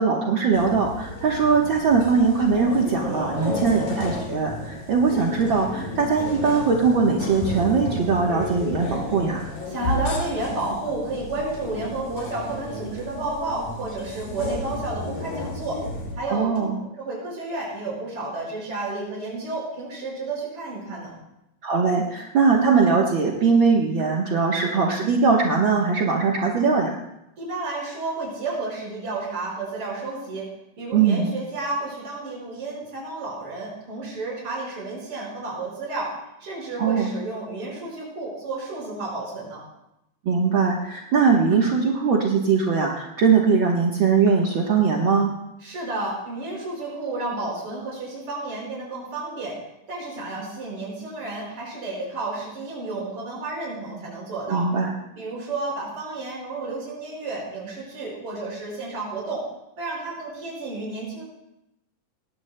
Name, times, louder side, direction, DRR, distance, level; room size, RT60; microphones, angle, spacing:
voice 1, 0.0-9.4 16.3-16.8 21.6-27.0 30.9-31.3 36.8-37.1 40.2-45.3 54.5-54.9, right 5 dB, 70° right, -2 dB, 1.1 m, -21 dB
sound 1, 0.5-16.1, left 1 dB, 65° left, 4.2 m, -32 dB
voice 2, 3.3-3.7 9.7-15.8 16.2-16.7 17.0-21.1 27.4-30.4 30.8-36.1 36.4-39.6 45.6-49.6 49.9-54.7 55.2-59.4 59.8-61.2, right 2 dB, 40° right, -4 dB, 5.9 m, -31 dB
19.5 x 18.0 x 2.2 m, 0.87 s
omnidirectional pair, 4.0 m